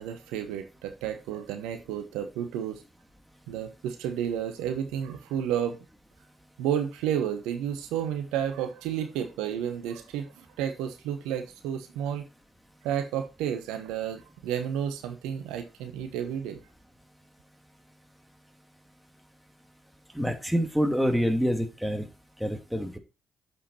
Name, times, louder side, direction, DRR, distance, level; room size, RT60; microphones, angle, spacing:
voice 1, 0.0-2.8 3.5-5.8 6.6-12.3 12.8-16.6, right 9 dB, 75° right, 1.1 m, -31 dB
voice 2, 20.1-22.1 22.4-23.0, equal, ahead, 2.6 m, -26 dB
8.4 x 7.5 x 4.3 m
hypercardioid pair, 45°, 0 cm